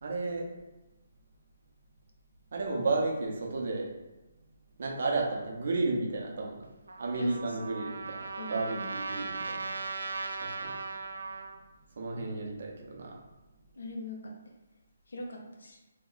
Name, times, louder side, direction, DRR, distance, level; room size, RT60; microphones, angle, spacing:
voice 1, 0.0-0.5 2.5-4.0 4.8-6.7 7.0-9.6 10.4-10.7 12.0-13.2, right 3 dB, 45° right, -1 dB, 0.6 m, -33 dB
Trumpet, 6.9-11.6, right 4 dB, 85° right, 0.4 m, -38 dB
voice 2, 7.2-7.8 8.4-8.9 13.8-14.3 15.1-15.8, left 1 dB, 85° left, 1 dB, 0.7 m, -39 dB
2.9 x 2.1 x 3.8 m, 1.0 s
hypercardioid pair, 180°, 0 cm